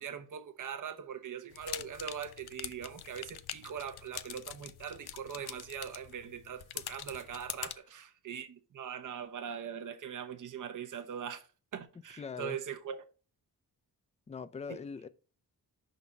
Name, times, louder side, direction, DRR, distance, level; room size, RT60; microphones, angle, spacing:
voice 1, 0.0-11.5 11.7-13.0 14.7-14.8, right 8 dB, 55° right, 0.8 m, -41 dB
sound 1, 1.5-7.8, left 11 dB, 85° left, 0.5 m, -44 dB
voice 2, 12.2-12.6 14.3-15.1, left 5 dB, 20° left, 0.4 m, -42 dB
5.4 x 4.0 x 5.9 m
wide cardioid pair, 90°, 37 cm